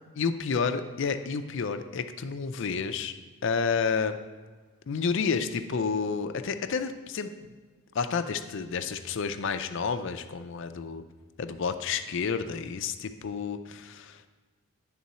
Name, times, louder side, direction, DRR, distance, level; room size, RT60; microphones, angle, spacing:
voice 1, 0.2-3.2 3.4-4.2 4.9-7.3 7.9-11.0 11.4-14.3, left 5 dB, 55° left, 9 dB, 0.4 m, -30 dB
10.5 x 3.7 x 4.1 m, 1.4 s
head